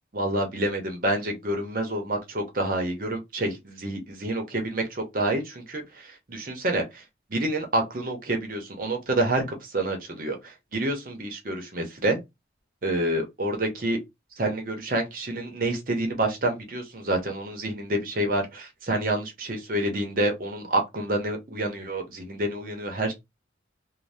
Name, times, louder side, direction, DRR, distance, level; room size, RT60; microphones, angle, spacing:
voice 1, 0.1-7.0 7.3-12.2 12.8-14.0 14.4-23.1, right 1 dB, 45° right, 0.7 m, -28 dB
2.6 x 2.1 x 3.3 m
head